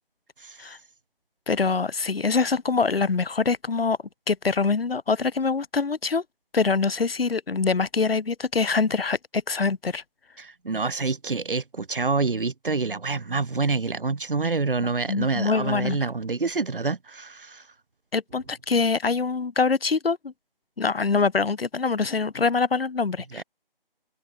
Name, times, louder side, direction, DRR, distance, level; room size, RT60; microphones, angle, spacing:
voice 1, 1.5-4.0 4.3-6.2 6.5-10.0 15.1-16.0 18.1-20.3 20.8-23.4, left 4 dB, 80° left, 1.4 m, -24 dB
voice 2, 10.4-17.7 23.3-23.4, right 4 dB, 65° right, 3.0 m, -27 dB
open air
figure-of-eight pair, 170°, 29 cm